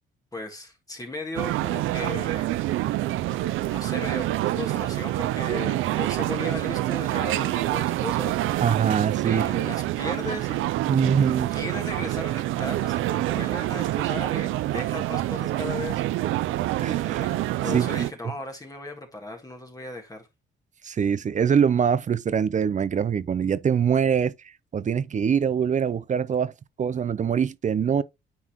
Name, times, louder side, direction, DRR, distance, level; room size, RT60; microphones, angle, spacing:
voice 1, 0.3-2.7 3.7-4.3 4.6-8.4 9.2-10.6 11.5-16.4 17.1-20.3, left 2 dB, 20° left, 1.7 m, -36 dB
sound 1, 1.4-18.1, right 15 dB, 85° right, 0.5 m, -27 dB
voice 2, 8.6-9.4 10.9-11.5 16.8-17.2 17.7-18.1 20.8-24.3 24.7-26.5 26.8-28.0, right 7 dB, 40° right, 0.6 m, -23 dB
9.5 x 4.1 x 3.0 m
cardioid pair, 90°, 20 cm